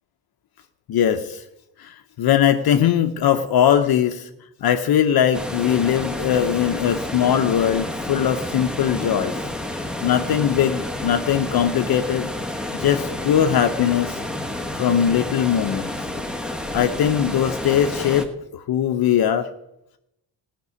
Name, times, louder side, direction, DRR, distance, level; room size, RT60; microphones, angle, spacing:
voice 1, 0.9-1.4 1.8-4.3 4.6-9.4 9.7-12.3 12.7-14.2 14.8-15.9 16.7-19.5, left 9 dB, 60° left, 7 dB, 0.8 m, -20 dB
sound 1, 5.3-18.3, left 1 dB, ahead, 1.0 m, -30 dB
16.5 x 6.1 x 9.5 m, 0.85 s
cardioid pair, 160°, 42 cm